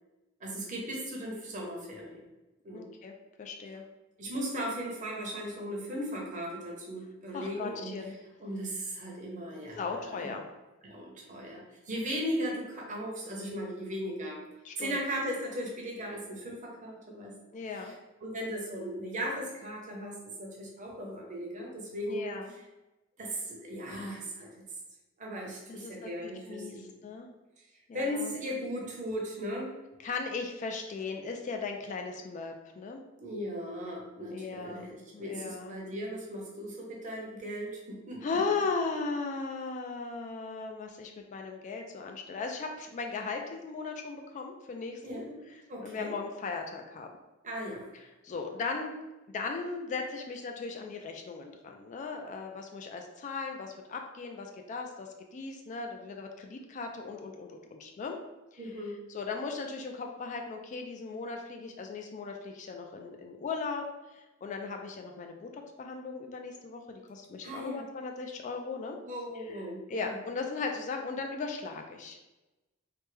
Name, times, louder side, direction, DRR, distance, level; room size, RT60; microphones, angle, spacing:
voice 1, 0.4-2.2 2.6-2.9 4.2-8.0 8.4-10.3 10.8-14.4 14.8-17.3 17.8-17.9 18.2-22.2 23.2-24.6 25.2-26.9 27.9-29.8 33.2-38.2 45.0-45.4 45.7-46.1 47.4-47.8 58.6-59.0 67.4-67.8 69.0-70.2, equal, 40° right, -1 dB, 0.7 m, -37 dB
voice 2, 2.7-3.8 7.3-8.2 9.8-10.4 14.6-15.0 17.5-17.9 22.1-22.5 25.7-26.7 27.0-27.3 27.9-28.4 30.0-33.0 34.3-35.7 38.2-45.2 45.5-47.1 48.2-48.9 49.3-58.2 58.5-58.6 59.1-69.0 69.3-69.6 69.9-72.2, left 4 dB, 40° left, 3 dB, 0.3 m, -37 dB
3.2 x 2.1 x 3.2 m, 1.0 s
head